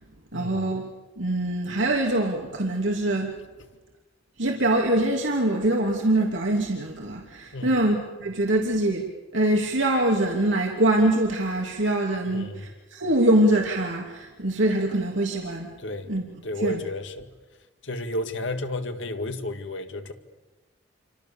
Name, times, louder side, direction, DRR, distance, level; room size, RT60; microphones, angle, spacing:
voice 1, 0.3-0.9 1.2-3.3 4.4-9.0 9.3-15.7 16.1-16.8, right 1 dB, 75° right, 2.8 m, -24 dB
voice 2, 12.3-12.7 15.8-16.1 16.4-17.3 17.8-20.1, left 1 dB, 70° left, 2.1 m, -32 dB
28.5 x 25.5 x 7.2 m
head